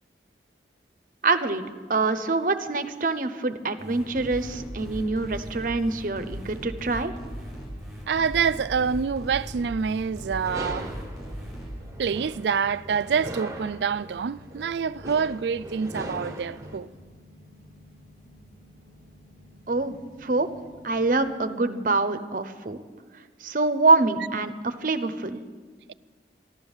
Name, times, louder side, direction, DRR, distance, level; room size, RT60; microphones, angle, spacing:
voice 1, 1.2-1.6 1.9-7.1 19.7-20.0 20.2-20.5 20.8-22.8 23.4-25.4, right 3 dB, 50° right, 0.7 m, -25 dB
sound 1, 3.8-11.7, equal, ahead, 4.9 m, -38 dB
sound 2, 3.9-21.3, left 1 dB, 50° left, 4.9 m, -51 dB
voice 2, 8.1-10.9 12.0-16.9, right 6 dB, 75° right, 0.4 m, -26 dB
sound 3, 10.4-16.8, right 1 dB, 20° right, 1.0 m, -39 dB
13.0 x 12.0 x 7.2 m
head